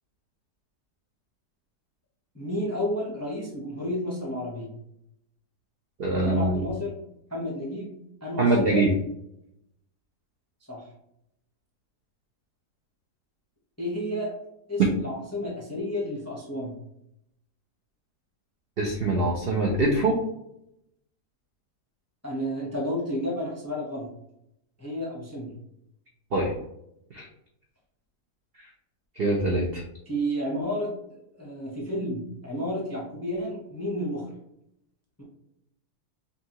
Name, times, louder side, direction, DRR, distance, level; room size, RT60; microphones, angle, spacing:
voice 1, 2.3-4.7 6.2-7.0 7.3-7.9 8.2-8.8 10.7-10.8 13.8-14.3 14.7-16.8 22.2-24.1 24.8-25.5 30.1-30.9 31.4-34.2 35.2-35.3, equal, 20° left, -3 dB, 0.4 m, -31 dB
voice 2, 6.0-6.6 8.4-8.9 18.8-20.2 26.3-26.5 27.1-27.3 29.2-29.8, right 2 dB, 65° right, 0 dB, 0.6 m, -23 dB
5.3 x 2.4 x 2.9 m, 0.79 s
omnidirectional pair, 1.7 m